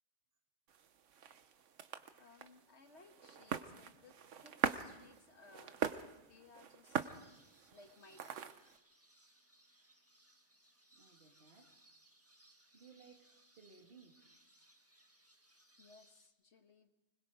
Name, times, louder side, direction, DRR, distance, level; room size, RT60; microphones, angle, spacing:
sound 1, 0.7-8.8, right 7 dB, 85° right, 1.3 m, -43 dB
voice 1, 2.2-5.9 6.3-7.1 7.7-8.8 15.8-16.9, left 3 dB, 65° left, 1.9 m, -62 dB
sound 2, 7.0-16.3, right 1 dB, 10° right, 1.7 m, -68 dB
voice 2, 10.9-11.8 12.7-14.3, right 5 dB, 50° right, 2.6 m, -61 dB
24.5 x 21.0 x 5.0 m
omnidirectional pair, 1.2 m